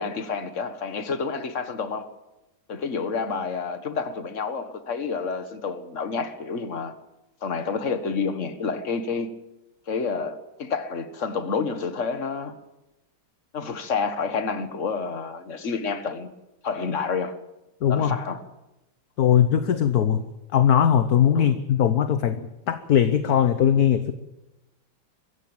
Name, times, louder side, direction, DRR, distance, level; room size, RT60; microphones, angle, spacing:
voice 1, 0.0-2.1 2.7-7.0 7.4-9.3 9.9-12.5 13.5-16.3 16.6-17.3 17.9-18.4 21.3-21.5, left 5 dB, 40° left, 1.8 m, -29 dB
voice 2, 17.8-18.2 19.2-20.2 20.5-24.1, left 9 dB, 55° left, 1.4 m, -20 dB
22.5 x 16.0 x 8.8 m
omnidirectional pair, 2.2 m